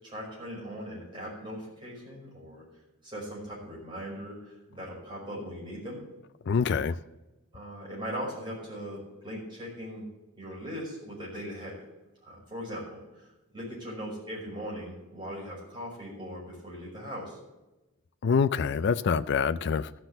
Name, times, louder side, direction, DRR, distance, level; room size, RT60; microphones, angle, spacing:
voice 1, 0.0-2.6 3.0-6.0 7.5-10.1 10.3-11.9 12.2-17.4, equal, 20° right, 5.5 m, -39 dB
voice 2, 6.5-7.0 18.2-20.0, left 6 dB, 50° left, 0.4 m, -26 dB
14.0 x 6.1 x 7.9 m
head